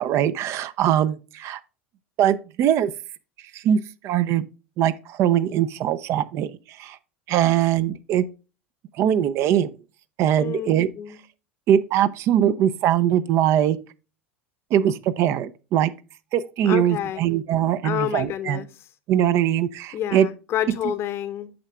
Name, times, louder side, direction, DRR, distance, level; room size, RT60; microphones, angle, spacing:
voice 1, 0.0-1.6 2.2-2.9 3.5-4.5 4.8-7.0 7.3-8.3 9.0-9.7 10.2-10.9 11.7-13.8 14.7-15.9 16.3-18.6 19.1-20.3, right 10 dB, 45° right, 0.5 m, -21 dB
voice 2, 10.4-10.7 11.0-11.2 16.6-17.3 17.8-18.7 19.9-21.5, left 11 dB, 40° left, 0.8 m, -28 dB
8.6 x 6.4 x 2.3 m
figure-of-eight pair, 75°, 7 cm